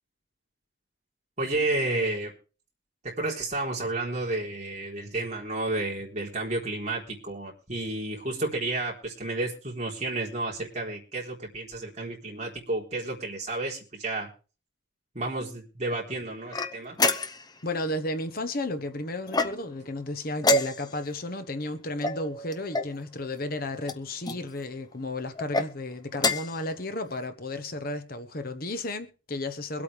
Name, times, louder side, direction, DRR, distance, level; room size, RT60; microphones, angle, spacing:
voice 1, 1.4-2.3 3.0-14.3 15.1-17.0, right 2 dB, 35° right, 3.9 m, -31 dB
sound 1, 16.5-17.6 19.3-19.9 20.4-21.1 22.0-23.0 23.8-24.4 25.4-25.7 26.1-26.6, left 2 dB, 20° left, 0.7 m, -27 dB
voice 2, 17.6-29.8, left 2 dB, 50° left, 1.1 m, -33 dB
23.5 x 8.5 x 3.5 m
head